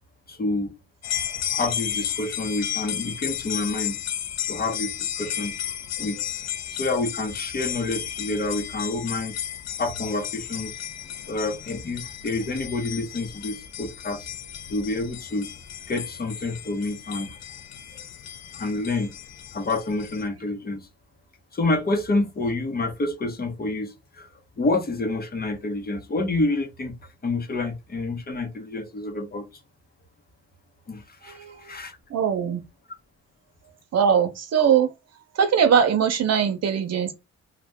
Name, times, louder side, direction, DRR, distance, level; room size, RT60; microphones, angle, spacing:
voice 1, 0.3-0.8 1.5-4.0 4.5-5.6 6.0-6.3 6.7-9.4 9.8-10.8 11.3-14.3 14.7-15.5 15.9-17.4 18.5-19.1 19.5-20.9 21.5-24.3 24.6-27.0 27.2-29.5 30.9-32.0, left 2 dB, 30° left, 0.8 m, -28 dB
sound 1, 1.0-20.3, left 10 dB, 60° left, 0.6 m, -34 dB
voice 2, 31.2-31.6 32.1-32.6 33.9-34.9 35.3-37.1, right 7 dB, 55° right, 0.7 m, -21 dB
2.6 x 2.2 x 3.4 m
cardioid pair, 90°, 30 cm